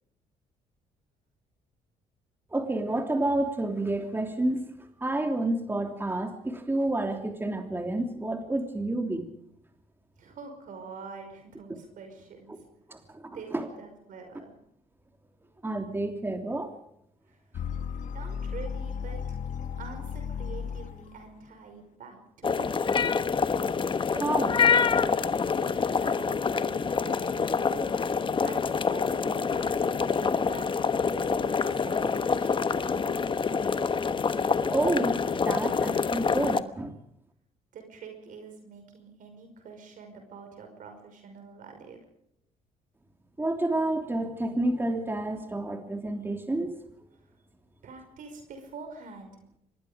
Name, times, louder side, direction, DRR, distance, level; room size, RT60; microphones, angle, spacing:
voice 1, 2.5-4.7 5.0-9.3 11.7-11.8 12.9-13.2 13.5-13.7 15.6-16.7 24.1-24.6 34.7-35.2 35.4-37.0 43.4-46.8, right 2 dB, 15° right, 5 dB, 3.1 m, -29 dB
voice 2, 10.2-12.6 13.3-14.5 17.3-17.4 18.0-19.4 19.8-23.3 26.0-27.9 28.4-30.8 31.0-33.0 37.7-42.0 47.8-49.4, right 5 dB, 65° right, 5 dB, 5.5 m, -46 dB
sound 1, 17.5-21.3, left 7 dB, 60° left, 1.4 m, -35 dB
sound 2, 22.4-36.6, left 5 dB, 35° left, 1.2 m, -26 dB
25.0 x 20.5 x 5.1 m, 0.75 s
supercardioid pair, 80°, 15 cm